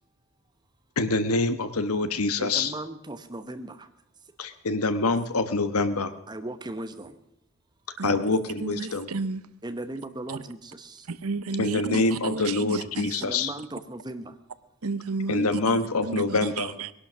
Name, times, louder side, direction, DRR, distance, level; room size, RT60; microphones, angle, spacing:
voice 1, 1.0-2.7 4.4-6.1 8.0-9.1 11.6-13.5 15.3-16.7, left 3 dB, 85° left, 1.2 m, -25 dB
voice 2, 2.4-3.9 6.3-7.2 9.6-11.1 13.2-14.4, right 1 dB, 20° right, 0.9 m, -37 dB
voice 3, 8.0-9.4 10.3-10.4 11.1-13.2 14.8-16.9, right 4 dB, 85° right, 0.8 m, -32 dB
20.5 x 11.5 x 6.2 m
head